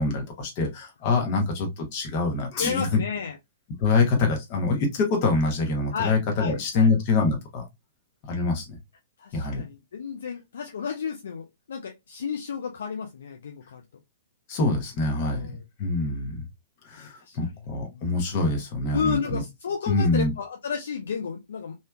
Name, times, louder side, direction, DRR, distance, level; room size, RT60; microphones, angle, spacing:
voice 1, 0.0-3.0 3.8-7.6 8.2-8.8 9.3-9.6 14.5-15.5 15.8-16.4 16.8-19.4 19.9-20.3, left 3 dB, 35° left, 1.1 m, -25 dB
voice 2, 2.6-3.4 5.9-6.9 9.2-13.8 15.2-15.6 17.0-17.4 17.8-18.1 18.9-21.8, left 6 dB, 60° left, 0.5 m, -32 dB
3.2 x 2.7 x 2.2 m
figure-of-eight pair, 110°, 0 cm